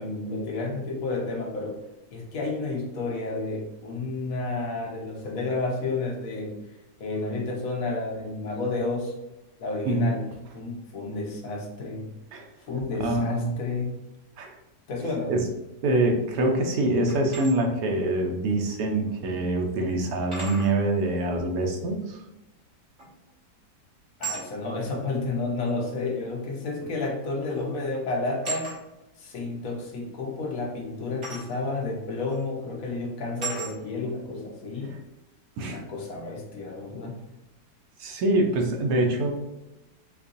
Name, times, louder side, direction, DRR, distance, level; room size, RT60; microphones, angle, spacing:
voice 1, 0.0-1.8 2.1-6.6 7.0-9.1 9.6-10.2 10.5-12.1 12.7-14.0 14.9-15.3 24.2-28.7 29.2-34.9 35.6-37.2, left 3 dB, 60° left, -1 dB, 1.2 m, -31 dB
voice 2, 9.9-10.2 12.3-12.5 13.0-13.5 14.4-14.6 15.3-15.4 15.8-22.2 34.8-35.0 35.6-35.8 38.0-39.3, right 2 dB, 65° right, 2 dB, 1.0 m, -25 dB
sound 1, 17.1-17.5 19.1-19.2 20.3-20.7 23.0-23.3 24.2-24.5 25.7-25.8 27.0-27.2 27.5-27.8 28.4-28.8 31.2-31.5 32.3-32.4 33.4-33.7, right 4 dB, 40° right, 1.9 m, -35 dB
4.6 x 2.5 x 2.5 m, 0.96 s
omnidirectional pair, 1.8 m